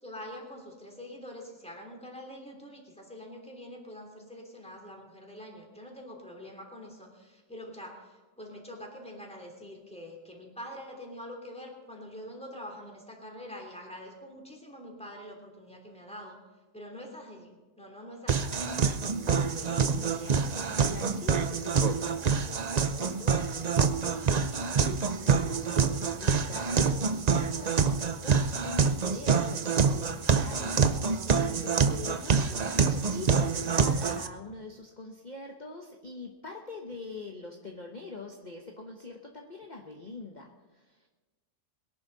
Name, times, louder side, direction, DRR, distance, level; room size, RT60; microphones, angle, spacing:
voice 1, 0.0-16.4 16.7-18.6, equal, 5° left, 0 dB, 3.1 m, -45 dB
sound 1, 18.3-34.3, right 5 dB, 70° right, 0.3 m, -26 dB
voice 2, 19.2-23.9 24.1-41.1, left 3 dB, 30° left, 1 dB, 1.2 m, -44 dB
22.0 x 11.0 x 4.1 m, 1.3 s
omnidirectional pair, 1.8 m